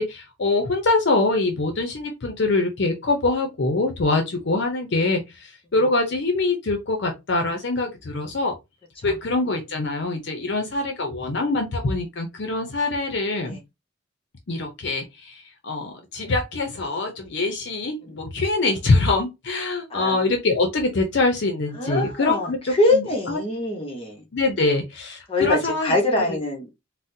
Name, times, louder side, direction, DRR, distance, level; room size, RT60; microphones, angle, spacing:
voice 1, 0.0-8.5 9.0-13.6 14.5-23.4 24.3-26.0 26.3-26.4, left 2 dB, 60° left, 0.6 m, -24 dB
voice 2, 19.9-20.2 21.8-24.2 25.3-26.7, left 2 dB, 30° left, 0.9 m, -24 dB
4.0 x 2.1 x 2.6 m
head